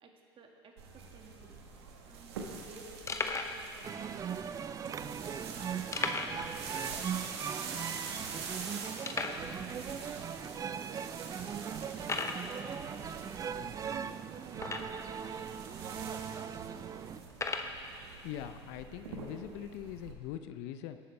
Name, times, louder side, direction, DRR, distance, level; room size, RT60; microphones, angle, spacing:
voice 1, 0.0-1.6 2.0-4.0 5.0-6.5 7.5-8.4 8.8-10.1 10.6-13.5 13.8-17.2, right 4 dB, 40° right, 1 dB, 1.9 m, -54 dB
sound 1, 0.8-20.1, right 5 dB, 75° right, 1.3 m, -46 dB
sound 2, 1.6-1.7 1.9-2.0 2.6-2.7 3.1-3.6 4.3-4.4 5.9-6.5 6.8-6.9 7.3-7.4 8.0-8.1 9.0-9.5 10.3-10.4 10.9-11.1 12.0-12.5 14.5-15.1 15.9-16.0 17.3-17.8, left 4 dB, 20° left, 0.9 m, -35 dB
sound 3, 3.8-17.2, right 7 dB, 25° right, 0.4 m, -40 dB
voice 2, 18.1-21.0, left 11 dB, 60° left, 10 dB, 0.6 m, -42 dB
19.0 x 8.5 x 3.3 m, 2.2 s
hypercardioid pair, 75°, 14 cm